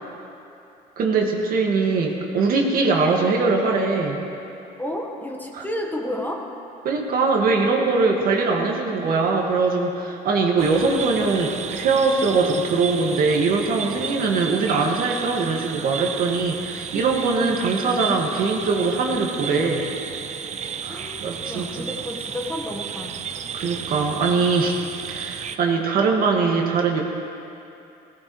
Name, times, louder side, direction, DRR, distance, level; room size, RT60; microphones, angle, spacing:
voice 1, 1.0-4.2 5.6-5.7 6.8-19.9 20.8-21.9 23.5-24.8 25.0-27.0, right 4 dB, 60° right, 1 dB, 1.9 m, -22 dB
voice 2, 4.8-6.5 20.9-23.2, left 1 dB, 10° left, 1 dB, 1.2 m, -31 dB
sound 1, 10.6-25.6, right 7 dB, 45° right, 0.6 m, -33 dB
18.0 x 16.5 x 3.2 m, 2.7 s
cardioid pair, 110°, 17 cm